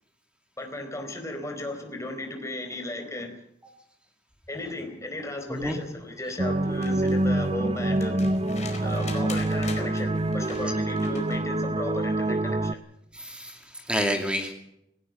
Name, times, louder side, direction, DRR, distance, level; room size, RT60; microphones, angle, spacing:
voice 1, 0.6-3.3 4.5-8.2 8.8-12.8, left 1 dB, 15° left, 6 dB, 4.2 m, -35 dB
sound 1, 6.4-12.7, right 1 dB, 35° right, 0.8 m, -26 dB
sound 2, 6.6-11.5 13.1-13.2, left 4 dB, 40° left, 4.6 m, -43 dB
voice 2, 13.1-14.5, equal, 5° right, 4 dB, 2.5 m, -29 dB
18.5 x 18.0 x 7.8 m, 0.76 s
head